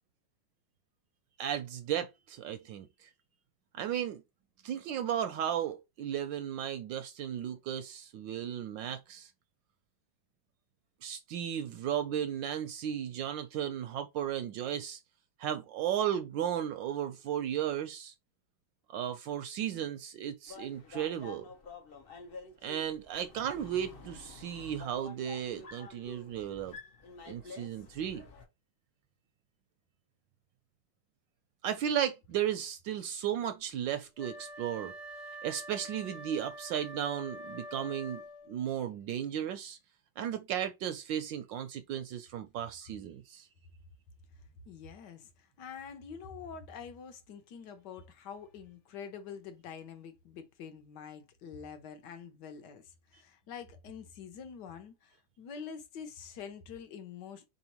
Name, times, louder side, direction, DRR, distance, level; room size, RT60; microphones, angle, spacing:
voice 1, 1.4-3.1 3.7-4.2 4.6-9.3 11.0-15.0 15.4-18.1 18.9-21.5 22.6-26.8 27.3-28.2 31.6-35.0 35.4-38.2 38.5-39.8 40.2-43.5, right 10 dB, 75° right, 1.1 m, -35 dB
sound 1, 20.5-28.5, left 4 dB, 90° left, 0.5 m, -49 dB
Wind instrument woodwind instrument, 34.2-38.6, equal, 40° left, 1.3 m, -46 dB
voice 2, 44.7-57.5, left 7 dB, 65° left, 1.2 m, -46 dB
4.1 x 3.5 x 2.9 m
omnidirectional pair, 2.3 m